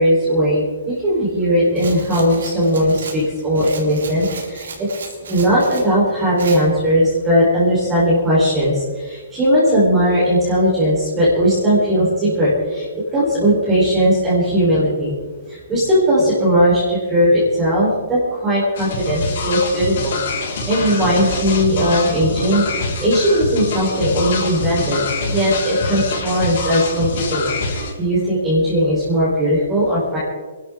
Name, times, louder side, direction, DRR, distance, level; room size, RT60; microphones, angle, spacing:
voice 1, 0.0-4.9 5.3-8.8 9.0-12.8 13.1-15.1 15.7-20.2 20.7-22.7 23.0-30.2, equal, 10° right, -8 dB, 4.5 m, -18 dB
Rattle, 1.8-5.9 6.4-6.6, right 5 dB, 85° right, 4.0 m, -35 dB
sound 1, 18.8-27.9, left 3 dB, 50° left, 5.1 m, -25 dB
26.0 x 12.0 x 3.9 m, 1.4 s
hypercardioid pair, 170°, 0 cm